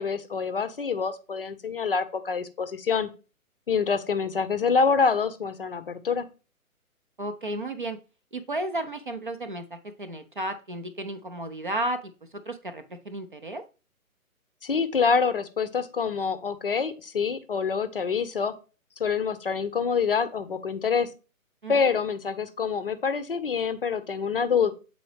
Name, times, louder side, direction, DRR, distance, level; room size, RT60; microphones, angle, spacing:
voice 1, 0.0-3.1 3.7-6.3 14.6-18.5 19.0-21.1 21.7-24.7, left 5 dB, 40° left, 12 dB, 0.5 m, -26 dB
voice 2, 7.2-8.0 8.3-12.1 12.5-13.6 21.6-21.9, right 1 dB, 35° right, 8 dB, 0.4 m, -33 dB
7.5 x 3.9 x 3.2 m, 0.33 s
figure-of-eight pair, 140°, 43 cm